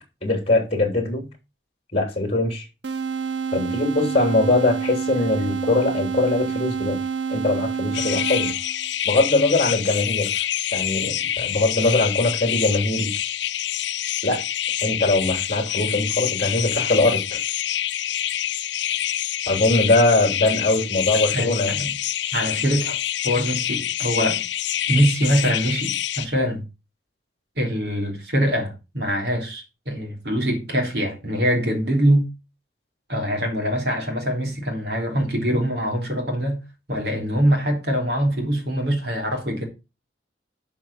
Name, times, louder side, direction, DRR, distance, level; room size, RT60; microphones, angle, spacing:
voice 1, 0.2-1.2 1.9-2.6 3.5-7.0 7.3-8.5 9.0-10.4 10.7-13.1 14.2-14.4 14.8-17.2 19.5-21.7, left 2 dB, 30° left, 3.3 m, -21 dB
sound 1, 2.8-8.9, right 6 dB, 75° right, 0.8 m, -28 dB
sound 2, 7.9-26.3, left 11 dB, 75° left, 0.6 m, -26 dB
voice 2, 21.3-22.0 22.3-23.0 23.2-24.4 24.9-26.7 27.6-32.3 33.1-36.6 36.9-39.7, equal, 60° right, 3.5 m, -23 dB
11.5 x 5.8 x 4.4 m
head